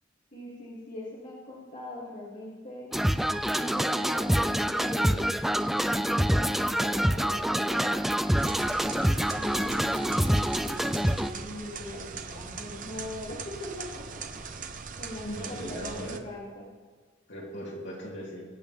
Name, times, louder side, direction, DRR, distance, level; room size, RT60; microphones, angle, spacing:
voice 1, 0.3-2.9 3.5-5.3 5.9-8.0 8.7-14.4 15.0-16.7, left 1 dB, 45° left, -6 dB, 2.6 m, -41 dB
sound 1, 2.9-11.3, equal, ahead, 0.3 m, -26 dB
sound 2, 8.4-16.2, right 5 dB, 45° right, 0.8 m, -40 dB
voice 2, 15.2-16.2 17.3-18.4, equal, 65° left, -4 dB, 3.3 m, -39 dB
22.0 x 8.4 x 3.5 m, 1.5 s
head